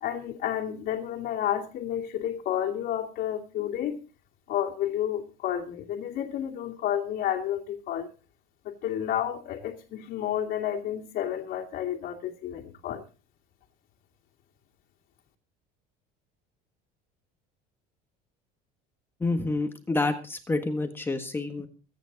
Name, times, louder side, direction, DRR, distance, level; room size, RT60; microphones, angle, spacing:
voice 1, 0.0-4.0 4.5-8.1 8.6-13.0, left 10 dB, 55° left, -1 dB, 2.5 m, -31 dB
voice 2, 19.2-21.7, left 2 dB, 10° left, 6 dB, 1.5 m, -28 dB
24.5 x 9.3 x 4.0 m, 0.34 s
cardioid pair, 150°, 18 cm